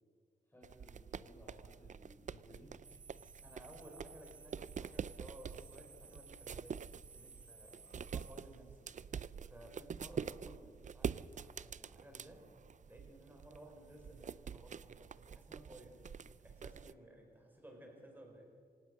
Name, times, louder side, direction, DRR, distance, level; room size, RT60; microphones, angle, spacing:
voice 1, 0.5-2.7, left 1 dB, 15° left, -5 dB, 4.8 m, -60 dB
sound 1, 0.6-16.9, right 7 dB, 50° right, 0.4 m, -46 dB
sound 2, 2.8-8.6, right 5 dB, 30° right, 0.9 m, -59 dB
voice 2, 3.4-8.9 9.4-12.5 12.9-18.5, right 1 dB, 10° right, 1 dB, 4.9 m, -57 dB
26.0 x 17.5 x 6.5 m, 2.1 s
wide cardioid pair, 175°, 17 cm